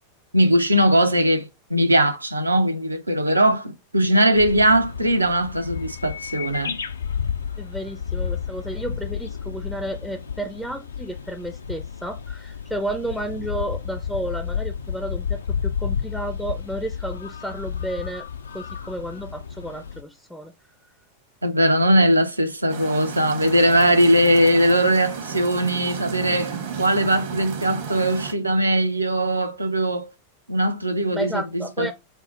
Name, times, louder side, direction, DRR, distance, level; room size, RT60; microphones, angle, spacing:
voice 1, 0.3-6.8 21.4-30.1 30.5-31.9, right 1 dB, 85° right, 0.5 m, -20 dB
sound 1, 4.3-20.0, left 7 dB, 70° left, 0.4 m, -31 dB
voice 2, 7.6-18.3 18.5-20.5 31.1-31.9, right 1 dB, ahead, 0.4 m, -32 dB
sound 2, 22.7-28.3, right 6 dB, 60° right, 0.9 m, -33 dB
4.2 x 2.0 x 4.1 m
figure-of-eight pair, 90°, 0 cm